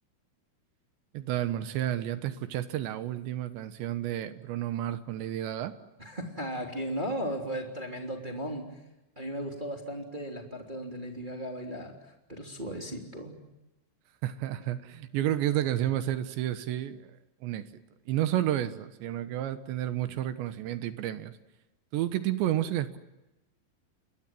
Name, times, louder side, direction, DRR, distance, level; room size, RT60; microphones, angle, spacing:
voice 1, 1.1-5.8 14.2-17.1 17.4-17.7 18.1-21.4 21.9-23.0, right 12 dB, 75° right, 12 dB, 3.1 m, -31 dB
voice 2, 6.0-8.7 9.2-13.4, equal, 15° right, 3 dB, 2.4 m, -36 dB
29.5 x 22.0 x 7.5 m, 0.97 s
omnidirectional pair, 5.7 m